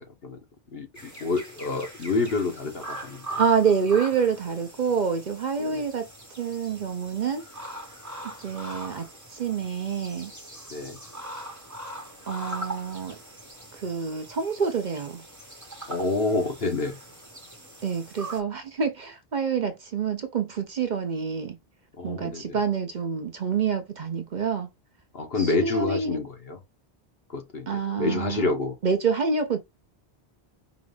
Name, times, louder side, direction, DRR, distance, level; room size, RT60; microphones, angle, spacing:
voice 1, 0.7-3.3 5.6-5.8 10.7-11.0 15.9-17.0 22.0-22.6 25.1-26.6 27.3-27.7 28.0-28.7, left 3 dB, 65° left, 1.5 m, -28 dB
sound 1, 0.9-18.4, right 1 dB, 15° right, 1.4 m, -41 dB
voice 2, 3.4-6.1 6.4-7.4 8.4-9.0 9.3-10.3 12.3-13.2 13.7-15.2 17.8-21.6 22.0-24.7 25.4-26.2 27.7-28.5 28.8-29.6, right 6 dB, 50° right, 0.7 m, -27 dB
4.8 x 2.5 x 3.3 m
omnidirectional pair, 1.1 m